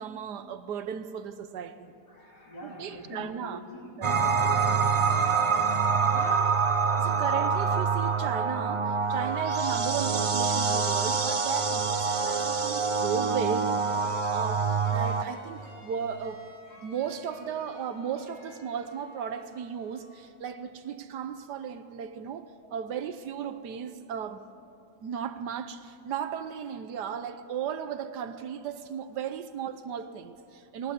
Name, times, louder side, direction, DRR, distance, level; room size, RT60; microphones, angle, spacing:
voice 1, 0.0-1.9 2.6-3.6 4.0-4.2 6.0-6.6 7.0-16.5 16.8-24.4 25.0-30.9, right 8 dB, 85° right, 1.5 m, -35 dB
voice 2, 2.1-5.6, left 1 dB, 80° left, 3.5 m, -44 dB
sound 1, 4.0-15.2, right 5 dB, 50° right, 0.4 m, -26 dB
sound 2, 10.7-20.3, left 1 dB, 30° left, 4.2 m, -50 dB
20.5 x 18.5 x 8.4 m
omnidirectional pair, 1.7 m